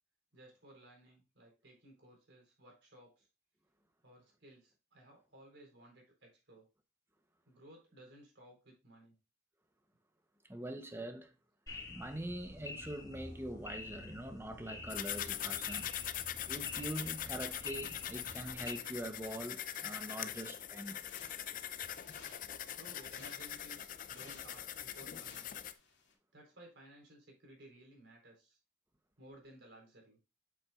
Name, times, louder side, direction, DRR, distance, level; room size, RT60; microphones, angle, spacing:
voice 1, 0.3-3.3 4.0-6.7 7.5-9.2 22.8-25.5 26.3-28.6 29.2-30.2, right 1 dB, 70° right, 3.9 m, -58 dB
voice 2, 10.4-11.4 11.9-15.9 16.4-21.0, right 1 dB, 15° right, 0.8 m, -43 dB
sound 1, 11.7-18.8, left 2 dB, 20° left, 2.2 m, -48 dB
sound 2, 14.9-25.7, left 11 dB, 45° left, 0.5 m, -42 dB
sound 3, 20.3-26.1, left 4 dB, 70° left, 2.3 m, -60 dB
8.0 x 7.3 x 2.4 m
head